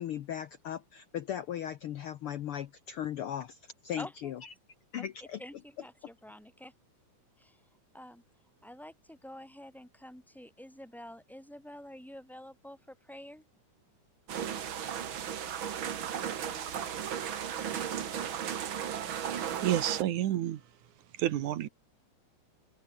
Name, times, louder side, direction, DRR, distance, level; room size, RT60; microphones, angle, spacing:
voice 1, 0.0-4.5 4.9-5.4, left 10 dB, 70° left, 1.3 m, -37 dB
voice 2, 4.0-4.3 5.0-5.1 5.4-6.7 7.4-7.6 7.9-8.2 8.6-13.4, equal, ahead, 0.6 m, -48 dB
sound 1, 14.3-20.0, right 8 dB, 50° right, 1.9 m, -35 dB
voice 3, 18.9-20.6 21.1-21.7, right 12 dB, 75° right, 2.7 m, -31 dB
omnidirectional pair, 3.5 m